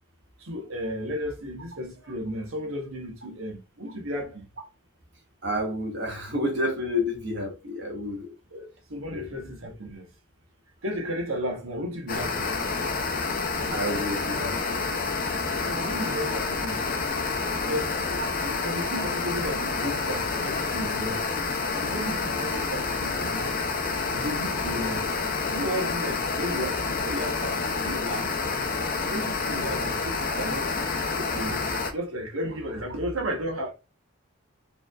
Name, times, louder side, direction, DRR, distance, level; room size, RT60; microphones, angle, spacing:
voice 1, 0.4-4.5 8.5-10.1 10.8-12.6 15.6-16.8 17.6-21.3 21.8-23.5 24.0-25.1 25.5-28.3 29.0-33.7, equal, 80° right, 1.2 m, -34 dB
voice 2, 5.4-8.3 9.1-9.3 13.7-14.8, left 1 dB, 55° right, 1.2 m, -30 dB
sound 1, 12.1-31.9, left 4 dB, 45° left, 0.7 m, -28 dB
4.4 x 3.4 x 2.4 m
head